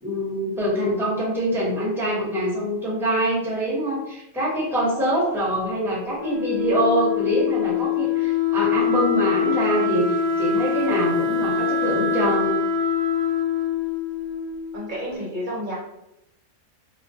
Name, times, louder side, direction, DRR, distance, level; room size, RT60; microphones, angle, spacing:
voice 1, 0.0-12.5, equal, ahead, -7 dB, 0.6 m, -24 dB
Wind instrument woodwind instrument, 6.1-14.9, left 6 dB, 85° left, 1.1 m, -24 dB
voice 2, 14.7-15.8, equal, 50° right, -5 dB, 0.6 m, -30 dB
2.4 x 2.2 x 2.6 m, 0.85 s
omnidirectional pair, 1.4 m